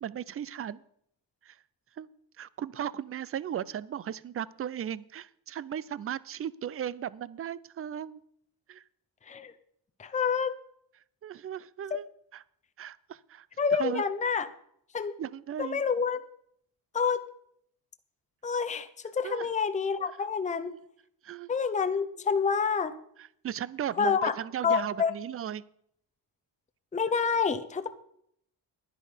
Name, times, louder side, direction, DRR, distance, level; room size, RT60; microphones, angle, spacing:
voice 1, 0.0-0.8 1.4-1.6 1.9-2.1 2.4-8.2 8.7-8.8 11.2-12.1 12.3-12.4 12.8-13.5 13.7-14.0 15.2-15.8 19.2-19.5 20.6-20.8 21.2-21.5 23.2-25.6, right 10 dB, 35° right, 21 dB, 0.4 m, -36 dB
voice 2, 10.0-10.5 13.6-14.5 14.9-15.1 15.6-16.2 16.9-17.2 18.4-20.8 21.5-23.0 24.0-24.3 24.6-25.1 26.9-27.9, left 6 dB, 15° left, 8 dB, 0.7 m, -28 dB
10.5 x 10.5 x 5.0 m, 0.69 s
cardioid pair, 115°, 41 cm